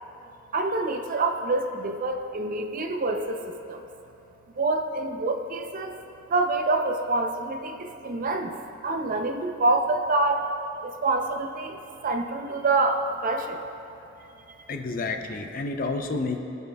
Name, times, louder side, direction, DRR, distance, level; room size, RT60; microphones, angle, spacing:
voice 1, 0.5-3.8 4.6-6.0 6.3-8.5 8.8-10.5 10.8-13.7, right 2 dB, 40° right, 5 dB, 0.6 m, -26 dB
voice 2, 14.7-16.4, left 3 dB, 45° left, 5 dB, 0.6 m, -30 dB
18.5 x 7.1 x 2.3 m, 2.7 s
head